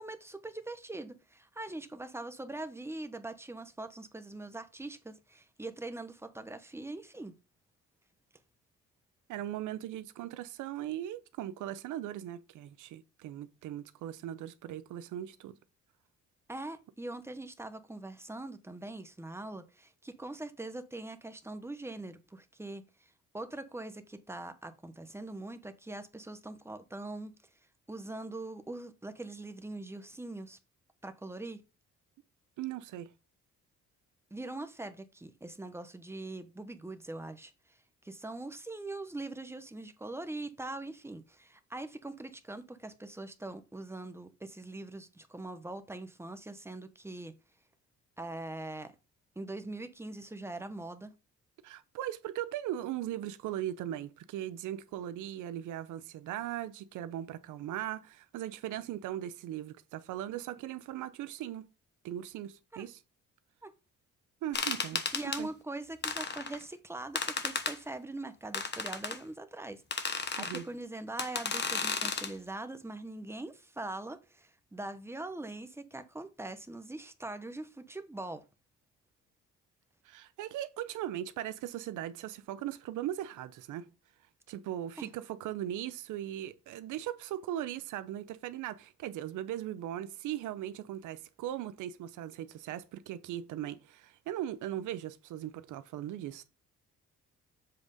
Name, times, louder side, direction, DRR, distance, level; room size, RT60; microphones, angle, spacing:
voice 1, 0.0-7.3 16.5-22.8 23.3-27.3 27.9-30.6 31.0-31.6 34.3-37.5 38.0-47.4 48.2-48.9 49.4-51.1 62.7-62.9 63.6-63.7 65.1-78.4 85.0-85.1, right 2 dB, 10° right, 1.0 m, -42 dB
voice 2, 9.3-15.6 32.6-33.1 51.6-61.6 62.0-63.0 64.4-65.1 65.4-65.5 70.4-70.7 80.0-83.9 84.5-96.4, right 12 dB, 85° right, 0.8 m, -39 dB
sound 1, 64.5-65.4 66.0-66.6 67.2-67.8 68.5-69.2 69.9-70.6 71.2-72.3, left 5 dB, 35° left, 1.1 m, -34 dB
7.7 x 3.5 x 5.3 m
cardioid pair, 90°, 30 cm